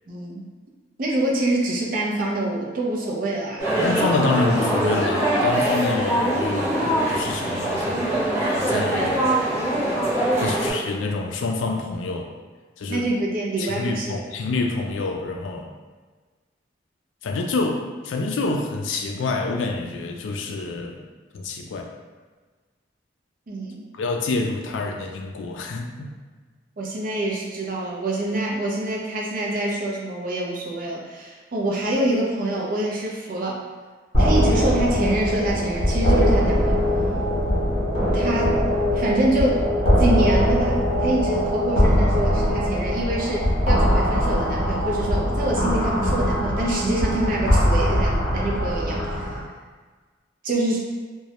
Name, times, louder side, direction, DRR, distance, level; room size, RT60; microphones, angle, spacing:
voice 1, 0.1-0.5 1.0-3.7 12.9-14.2 23.5-23.9 26.8-33.6 34.2-36.8 38.1-38.6 38.9-39.6 40.0-49.3 50.4-50.8, right 1 dB, 50° right, -3 dB, 0.4 m, -25 dB
sound 1, 3.6-10.7, right 1 dB, 15° right, 0.7 m, -23 dB
voice 2, 3.8-8.1 8.5-9.3 10.4-12.3 12.8-13.1 13.6-15.7 17.2-21.0 21.3-21.9 23.9-26.1, left 3 dB, 85° left, 2 dB, 0.3 m, -27 dB
sound 2, 34.1-49.4, equal, 35° left, 0.6 m, -21 dB
2.2 x 2.0 x 2.8 m, 1.4 s
head